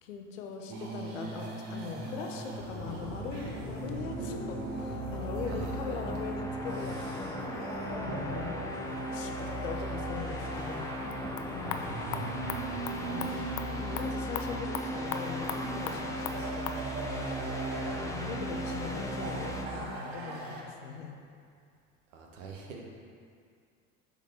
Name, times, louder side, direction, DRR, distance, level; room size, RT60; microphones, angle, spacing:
voice 1, 0.0-8.7 9.1-11.0 11.5-12.0 13.0-16.8 18.0-21.2, left 6 dB, 80° left, 3 dB, 0.8 m, -41 dB
sound 1, 0.7-20.6, right 3 dB, 60° right, 1.3 m, -41 dB
sound 2, 2.6-19.6, equal, 10° left, 0.7 m, -37 dB
voice 2, 5.5-6.0 8.2-8.4 11.6-11.9 17.6-18.3 22.1-22.8, right 4 dB, 75° right, 0 dB, 1.2 m, -46 dB
sound 3, 11.1-16.8, left 7 dB, 50° left, 0.6 m, -40 dB
7.0 x 4.0 x 4.5 m, 2.2 s
hypercardioid pair, 80°, 38 cm